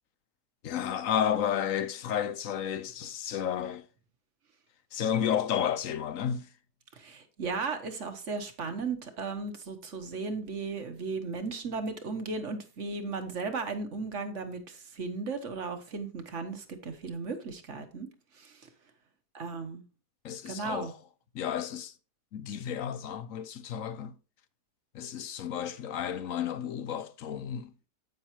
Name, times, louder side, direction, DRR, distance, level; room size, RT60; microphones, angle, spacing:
voice 1, 0.6-3.9 4.9-6.5 20.2-21.0 21.3-21.9 22.3-24.2 24.9-27.7, left 9 dB, 65° left, 1.0 m, -32 dB
voice 2, 6.9-18.1 18.4-18.6 19.3-19.8 20.5-20.9, right 4 dB, 50° right, 1.5 m, -36 dB
9.1 x 8.8 x 3.0 m
omnidirectional pair, 1.7 m